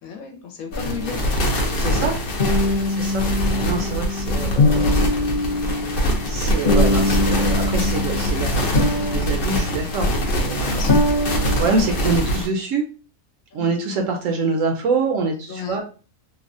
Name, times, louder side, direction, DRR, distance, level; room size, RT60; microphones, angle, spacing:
voice 1, 0.0-1.3 2.7-2.9 10.7-11.1 13.5-13.7 15.5-15.8, left 7 dB, 70° left, 3 dB, 1.0 m, -34 dB
sound 1, 0.7-12.5, left 1 dB, 55° left, 0.6 m, -21 dB
voice 2, 1.7-2.2 3.0-5.1 6.2-10.8 11.6-12.9 13.5-15.8, right 4 dB, 70° right, 3 dB, 0.8 m, -25 dB
3.2 x 2.1 x 2.5 m, 0.36 s
omnidirectional pair, 1.6 m